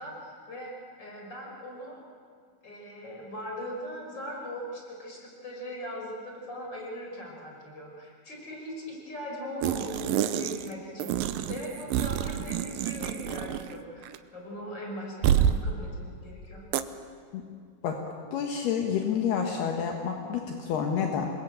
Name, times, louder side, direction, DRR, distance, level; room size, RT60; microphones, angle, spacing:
voice 1, 0.0-2.0 2.6-11.1 11.5-16.6, equal, 25° left, -1 dB, 5.8 m, -40 dB
sound 1, 9.6-10.7 11.0-13.8 14.0-14.2 15.2-15.6 16.7-16.8, right 10 dB, 75° right, 2.2 m, -28 dB
voice 2, 18.3-21.3, left 7 dB, 70° left, 2 dB, 3.4 m, -29 dB
27.5 x 21.0 x 8.9 m, 2.2 s
omnidirectional pair, 4.9 m